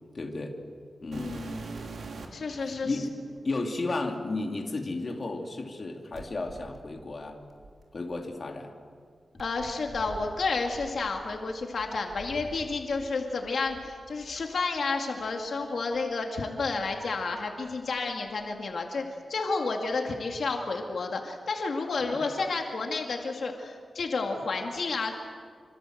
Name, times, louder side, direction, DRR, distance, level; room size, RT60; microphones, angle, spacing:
voice 1, 0.1-0.6 1.0-1.4 2.6-3.2 3.4-7.4 7.9-8.7 22.0-22.2, left 2 dB, 40° left, 2 dB, 2.9 m, -33 dB
voice 2, 1.1-1.7 2.3-3.0 9.4-19.0 19.3-25.1, left 3 dB, 65° left, 2 dB, 2.3 m, -31 dB
sound 1, 1.1-2.5 3.4-3.5 6.1-8.2 9.4-13.1 13.4-14.4 15.2-15.3 15.9-16.0 16.7-17.8 18.1-18.6 19.9-20.0, right 3 dB, 85° right, 3.4 m, -45 dB
26.5 x 26.5 x 7.9 m, 2.1 s
wide cardioid pair, 155°, 0 cm